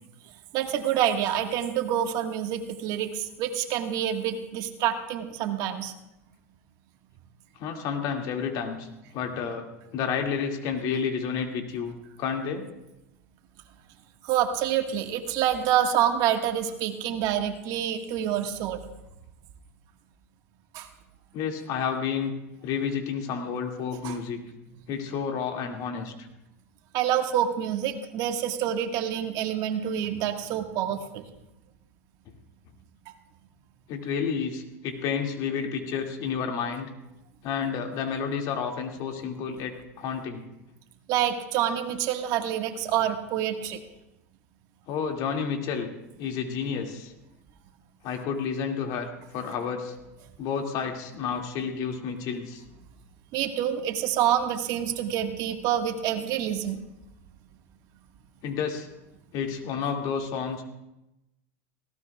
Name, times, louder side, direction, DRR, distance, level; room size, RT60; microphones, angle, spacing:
voice 1, 0.5-5.9 14.2-18.8 20.7-20.9 24.0-24.2 26.9-31.2 33.1-33.2 41.1-43.8 53.3-56.8, right 10 dB, 55° right, 5 dB, 1.6 m, -27 dB
voice 2, 7.6-8.9 9.1-9.6 9.9-12.6 21.3-22.3 22.6-24.4 24.9-26.1 33.9-36.9 37.4-40.4 44.9-45.9 46.2-47.1 48.0-49.1 49.3-49.9 50.4-52.6 58.4-58.9 59.3-60.6, left 6 dB, 55° left, 2 dB, 2.3 m, -30 dB
19.5 x 17.0 x 2.4 m, 0.92 s
hypercardioid pair, 105°, 8 cm